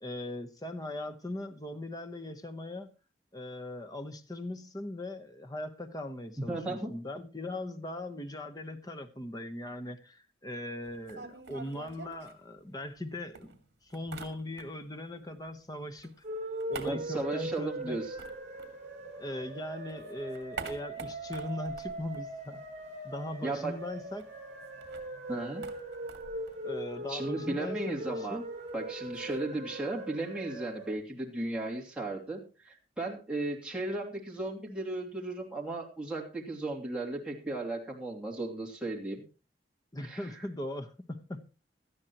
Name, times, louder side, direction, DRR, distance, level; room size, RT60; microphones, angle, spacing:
voice 1, 0.0-2.9 3.3-13.5 13.8-16.2 16.7-18.0 19.2-22.6 23.0-24.3 26.6-28.5 39.9-41.4, left 1 dB, 20° left, 1.0 m, -40 dB
voice 2, 6.4-6.9 16.8-18.1 23.4-23.7 25.3-25.7 27.1-28.4 28.7-39.2 40.0-40.3, right 2 dB, 5° right, 2.7 m, -35 dB
sound 1, 10.8-13.0 13.3-15.0 15.2-19.4 19.7-23.0 23.3-23.4 23.6-29.4, right 3 dB, 65° right, 2.2 m, -48 dB
sound 2, 16.2-30.9, right 1 dB, 35° right, 6.0 m, -40 dB
18.0 x 13.0 x 3.0 m
head